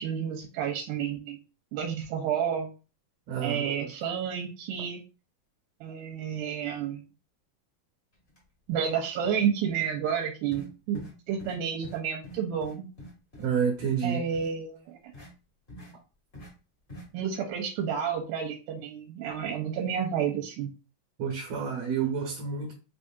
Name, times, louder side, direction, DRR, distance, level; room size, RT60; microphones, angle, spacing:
voice 1, 0.0-1.4 1.7-2.7 3.4-5.0 5.8-7.0 8.7-12.9 14.0-15.0 17.1-20.7, right 8 dB, 85° right, 2.1 m, -30 dB
voice 2, 3.3-3.9 13.4-14.2 21.2-22.7, right 6 dB, 65° right, 1.8 m, -29 dB
sound 1, 8.3-8.4 8.7-9.0 9.2-9.5 9.7-9.9 10.5-10.7 10.9-11.1 11.4-11.6 11.8-12.0 12.2-13.5 13.8-13.9 14.3-14.5 15.1-15.3 15.7-15.9 16.3-16.5 16.9-17.0, equal, 35° left, 0.8 m, -45 dB
4.8 x 2.7 x 2.3 m
omnidirectional pair, 3.7 m